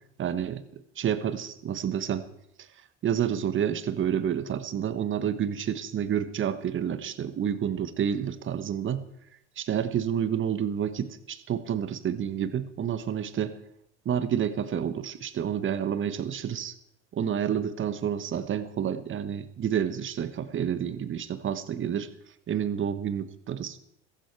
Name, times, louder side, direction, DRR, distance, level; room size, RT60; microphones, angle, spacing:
voice 1, 0.2-0.6 1.0-2.3 3.0-9.0 9.6-13.6 14.0-16.7 17.1-22.1 22.5-23.8, right 9 dB, 35° right, 12 dB, 1.2 m, -29 dB
15.5 x 15.0 x 4.7 m, 0.76 s
hypercardioid pair, 85°, 35 cm